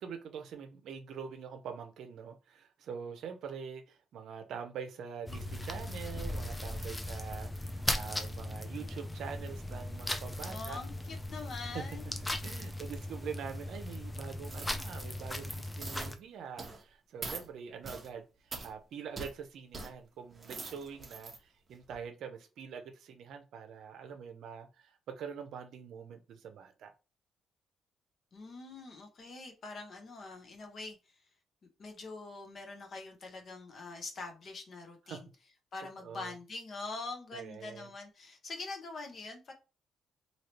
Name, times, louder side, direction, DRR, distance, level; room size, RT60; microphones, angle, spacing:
voice 1, 0.0-10.8 11.7-11.8 12.4-26.9 35.1-35.2 36.0-36.3 37.3-37.9, right 7 dB, 75° right, 0.6 m, -44 dB
sound 1, 5.3-16.2, left 1 dB, 15° left, 0.5 m, -38 dB
voice 2, 10.4-12.8 28.3-31.2 31.8-35.3 35.7-39.5, left 3 dB, 50° left, 1.0 m, -44 dB
coins over bed being hitted, 14.4-14.8 15.2-15.5 15.8-16.1 16.6-16.8 17.2-17.5 17.8-18.1 18.5-18.7 19.2-19.3 19.7-19.9 20.3-21.4 21.8-22.0, right 3 dB, 30° right, 0.8 m, -43 dB
3.1 x 2.8 x 2.9 m
cardioid pair, 90°, 0 cm